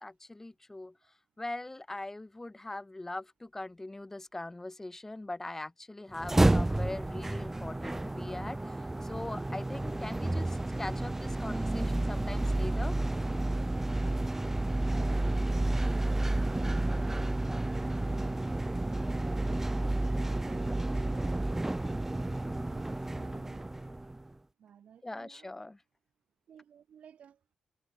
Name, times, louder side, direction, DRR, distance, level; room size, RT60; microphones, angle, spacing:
voice 1, 0.0-1.0 1.4-13.0 25.0-25.8, left 2 dB, 15° left, 1.2 m, -41 dB
sound 1, 6.1-24.3, right 2 dB, 15° right, 0.3 m, -31 dB
voice 2, 15.0-18.9 19.8-21.5 21.8-22.2 22.6-23.7 24.6-25.5 26.5-27.4, right 8 dB, 70° right, 5.1 m, -56 dB
cardioid pair, 65°, 2 cm